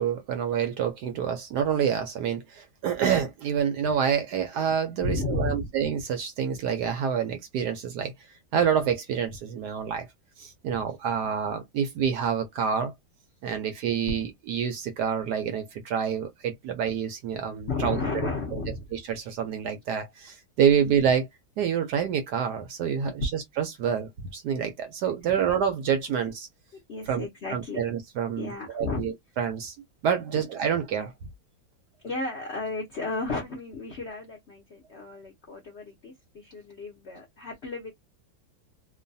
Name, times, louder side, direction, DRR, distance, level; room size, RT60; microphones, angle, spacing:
voice 1, 0.0-8.1 8.5-10.1 10.4-12.9 13.4-18.0 18.5-18.6 18.9-21.3 21.6-26.5 27.1-27.2 27.5-29.8 30.0-31.1, right 8 dB, 70° right, 1.0 m, -27 dB
voice 2, 5.0-5.7 14.1-14.2 17.7-18.9 23.0-23.1 25.2-25.4 26.9-27.8 28.4-29.1 30.3-30.4 32.0-37.9, left 3 dB, 65° left, 0.6 m, -33 dB
3.0 x 2.2 x 2.6 m
omnidirectional pair, 2.1 m